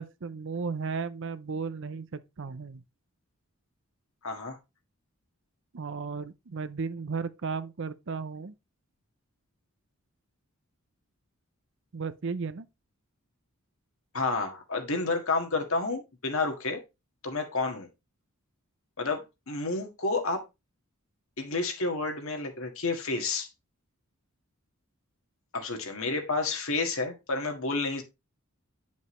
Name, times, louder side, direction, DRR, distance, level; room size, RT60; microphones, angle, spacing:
voice 1, 0.0-2.8 5.7-8.5 11.9-12.7, right 5 dB, 55° right, 0.6 m, -35 dB
voice 2, 4.2-4.6 14.1-16.8 17.2-17.9 19.0-20.4 21.4-23.5 25.5-28.0, left 3 dB, 65° left, 1.8 m, -30 dB
9.6 x 5.3 x 3.1 m
head